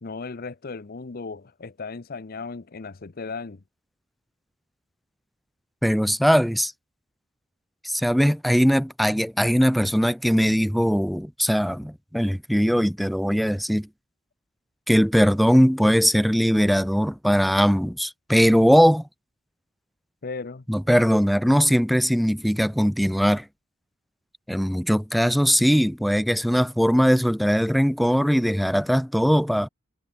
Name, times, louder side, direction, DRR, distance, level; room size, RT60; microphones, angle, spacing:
voice 1, 0.0-3.6 20.2-20.6, left 4 dB, 50° left, 0.7 m, -36 dB
voice 2, 5.8-6.7 7.8-13.9 14.9-19.0 20.7-23.4 24.5-29.7, equal, ahead, 0.7 m, -20 dB
head